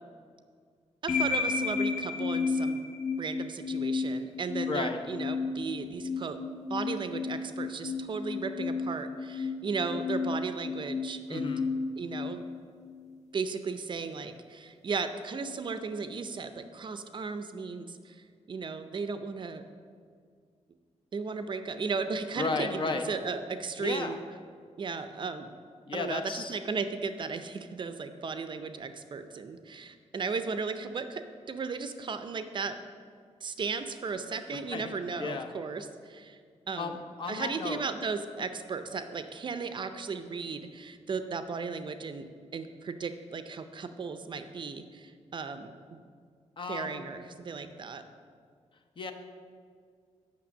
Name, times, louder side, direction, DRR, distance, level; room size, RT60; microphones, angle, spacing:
voice 1, 1.0-2.8 3.2-6.4 6.7-11.5 12.0-12.4 13.3-19.6 21.1-24.2 24.8-25.5 25.9-31.2 31.5-32.8 33.4-36.4 36.7-37.0 37.3-42.3 42.5-46.0 46.7-48.0, right 4 dB, 40° right, 9 dB, 0.5 m, -35 dB
sound 1, 1.1-13.1, left 4 dB, 65° left, 1.3 m, -33 dB
voice 2, 4.7-5.0 11.3-11.7 22.4-23.1 23.8-24.2 25.9-26.6 34.5-34.9 35.2-35.5 36.8-37.8 46.6-47.0 49.0-49.1, left 4 dB, 40° left, 6 dB, 0.7 m, -34 dB
8.7 x 5.9 x 7.1 m, 2.1 s
wide cardioid pair, 155°, 12 cm